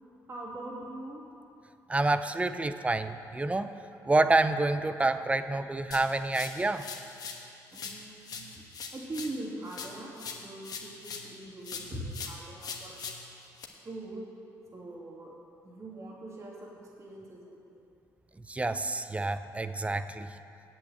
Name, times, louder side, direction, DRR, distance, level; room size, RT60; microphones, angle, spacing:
voice 1, 0.3-1.2 7.7-8.6 8.9-13.0 13.8-14.3 14.7-15.3 15.6-17.8, right 1 dB, 40° right, -3 dB, 2.9 m, -42 dB
voice 2, 1.9-3.8 4.1-6.9 18.4-20.4, right 2 dB, 15° right, 11 dB, 0.6 m, -28 dB
sound 1, 5.9-7.5 7.7-11.4 11.6-13.6, left 5 dB, 55° left, 1.3 m, -42 dB
8.7 x 8.0 x 8.1 m, 2.7 s
supercardioid pair, 70°, 8 cm